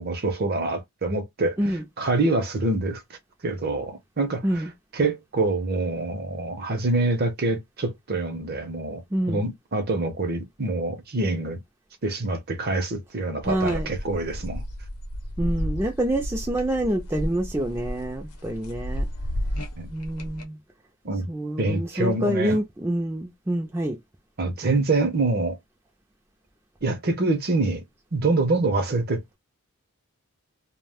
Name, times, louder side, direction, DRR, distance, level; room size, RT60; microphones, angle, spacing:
voice 1, 0.0-1.6 2.0-3.0 3.4-4.6 4.9-9.0 9.3-11.6 12.0-14.6 19.8-19.9 21.0-21.3 21.6-22.6 24.4-25.6 26.8-27.8 28.1-29.4, right 2 dB, 45° right, 0.7 m, -25 dB
voice 2, 9.1-9.4 13.4-13.9 15.4-19.1 19.9-20.6 21.3-24.0, right 1 dB, 10° right, 0.4 m, -27 dB
sound 1, 13.4-20.4, equal, 90° left, 0.7 m, -32 dB
2.3 x 2.1 x 3.4 m
head